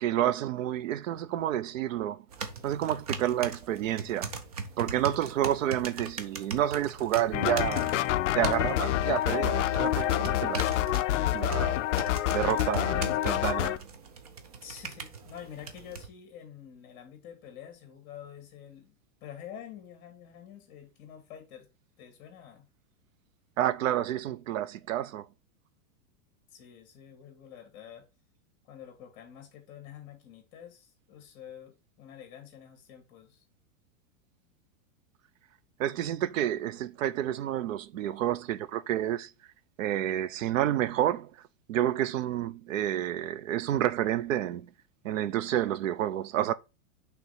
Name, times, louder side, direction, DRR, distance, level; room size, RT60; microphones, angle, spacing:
voice 1, 0.0-2.2 2.6-4.3 4.8-8.0 8.3-10.7 11.3-11.8 12.3-13.9 23.6-25.3 35.8-39.3 39.8-41.3 41.7-44.7 45.0-46.5, right 12 dB, 65° right, 0.7 m, -29 dB
sound 1, 2.3-16.1, right 5 dB, 30° right, 0.4 m, -40 dB
sound 2, 7.3-13.8, left 14 dB, 60° left, 0.5 m, -27 dB
voice 2, 14.6-18.9 19.2-21.7 22.0-22.7 26.5-28.1 28.6-33.4, left 9 dB, 30° left, 2.2 m, -48 dB
5.8 x 3.4 x 5.5 m
supercardioid pair, 180°, 42 cm